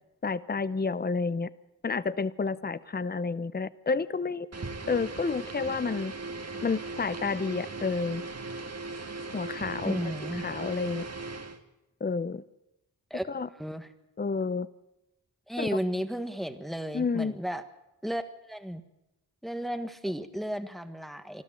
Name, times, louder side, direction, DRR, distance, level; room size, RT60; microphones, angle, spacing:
voice 1, 0.2-1.5 1.8-4.5 4.9-6.1 6.6-8.2 9.3-10.1 10.4-11.0 12.0-12.4 13.3-13.5 14.2-14.7 15.6-15.8 16.9-17.3, left 4 dB, 25° left, 18 dB, 0.7 m, -30 dB
sound 1, 4.5-11.6, right 3 dB, 45° right, 1.9 m, -38 dB
voice 2, 9.8-10.4 13.1-13.2 13.6-13.9 15.5-17.6 18.0-18.8 19.4-21.4, equal, ahead, 9 dB, 1.5 m, -33 dB
25.0 x 13.5 x 7.6 m, 0.91 s
cardioid pair, 65°, 36 cm